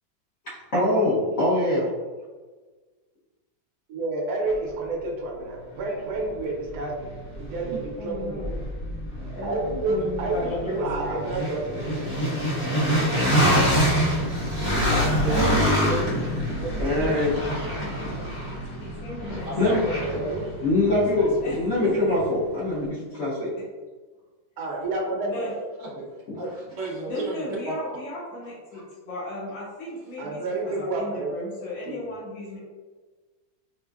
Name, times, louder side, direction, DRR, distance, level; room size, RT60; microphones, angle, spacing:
voice 1, 0.7-1.9 16.8-17.4 19.6-19.8 20.6-23.5, left 1 dB, 55° left, -8 dB, 1.1 m, -23 dB
voice 2, 3.9-8.5 9.4-12.0 20.1-20.5 24.6-25.5 30.2-31.5 31.9-32.0, right 2 dB, 65° right, -1 dB, 1.1 m, -30 dB
sound 1, 5.8-5.9 6.3-22.3, equal, 15° left, 0.9 m, -26 dB
voice 3, 8.0-8.6 9.3-9.6 9.9-11.2 17.8-20.5 21.4-21.6 21.8-22.2 25.1-25.5 27.1-32.6, left 1 dB, 85° left, -10 dB, 1.9 m, -36 dB
voice 4, 15.2-16.9 19.4-20.2 25.8-26.1 26.4-26.5 26.8-27.8 28.7-28.8, right 2 dB, 80° right, -5 dB, 0.6 m, -32 dB
4.9 x 2.1 x 2.3 m, 1.3 s
omnidirectional pair, 2.1 m